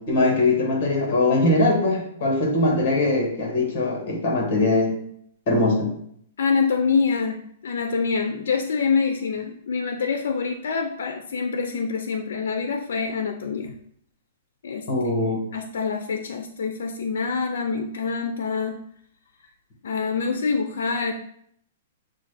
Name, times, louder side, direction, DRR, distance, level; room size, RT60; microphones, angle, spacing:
voice 1, 0.1-4.9 5.5-5.9 14.9-15.4, left 2 dB, 35° left, 1 dB, 1.2 m, -21 dB
voice 2, 6.4-13.7 14.6-14.9 15.5-18.8 19.8-21.1, left 5 dB, 80° left, 5 dB, 0.4 m, -25 dB
6.1 x 2.2 x 3.2 m, 0.68 s
hypercardioid pair, 175°, 0 cm